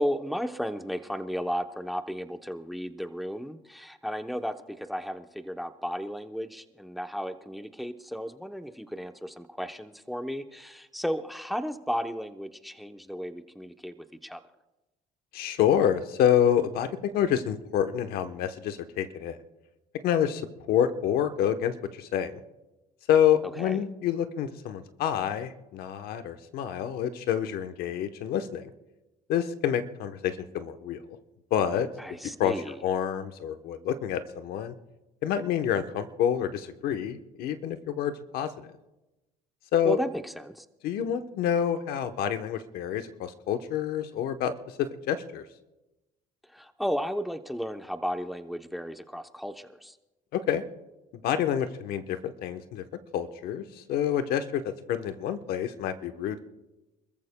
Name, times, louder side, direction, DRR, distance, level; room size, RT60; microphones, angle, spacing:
voice 1, 0.0-13.9 14.2-14.4 23.6-23.8 32.0-32.7 39.8-40.6 46.5-49.9, equal, ahead, 8 dB, 0.8 m, -34 dB
voice 2, 15.3-19.4 20.0-22.4 23.1-28.7 29.3-31.0 31.5-31.9 32.4-32.6 32.8-34.7 35.2-38.5 39.7-40.0 40.8-44.5 44.8-45.4 50.3-50.6 51.2-52.8 53.1-56.4, left 9 dB, 75° left, 9 dB, 1.0 m, -27 dB
28.0 x 14.5 x 2.2 m, 1.0 s
cardioid pair, 105°, 16 cm